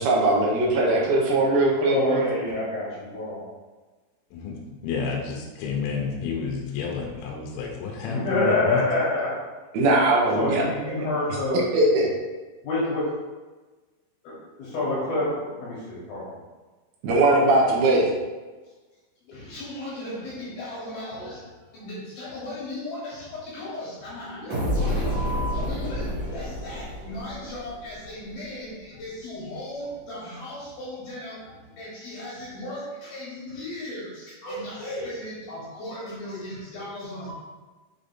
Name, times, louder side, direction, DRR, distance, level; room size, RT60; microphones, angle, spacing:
voice 1, 0.0-2.2 9.7-10.6 11.7-12.1 17.0-18.1, right 2 dB, 75° right, -2 dB, 2.3 m, -20 dB
voice 2, 1.8-3.5 8.0-9.3 10.3-11.6 12.6-13.1 14.2-14.3 14.6-16.3 19.3-37.3, left 2 dB, 65° left, -8 dB, 2.8 m, -31 dB
voice 3, 4.3-8.8, left 5 dB, 80° left, 0 dB, 2.8 m, -30 dB
sound 1, 24.5-28.2, equal, 45° right, 2.5 m, -29 dB
7.3 x 5.0 x 2.7 m, 1.2 s
omnidirectional pair, 5.7 m